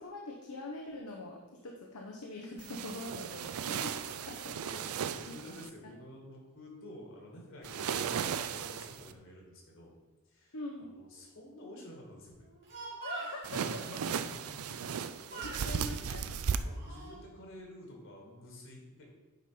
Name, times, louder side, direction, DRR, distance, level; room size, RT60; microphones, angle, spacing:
voice 1, 0.0-4.5 5.3-6.0 10.5-10.9 13.0-13.8 15.4-16.4, left 2 dB, 75° left, 0 dB, 0.9 m, -44 dB
sound 1, 2.6-5.7 7.6-9.1 13.4-16.6, right 7 dB, 70° right, 0.4 m, -36 dB
voice 2, 4.1-10.0 10.2-12.5 13.5-16.2 16.6-19.1, left 1 dB, 60° left, -1 dB, 2.2 m, -50 dB
Speech, 12.4-13.5 14.8-15.0 15.3-15.7 16.4-17.2, right 3 dB, 50° right, 2.3 m, -44 dB
9.2 x 4.3 x 4.9 m, 1.1 s
head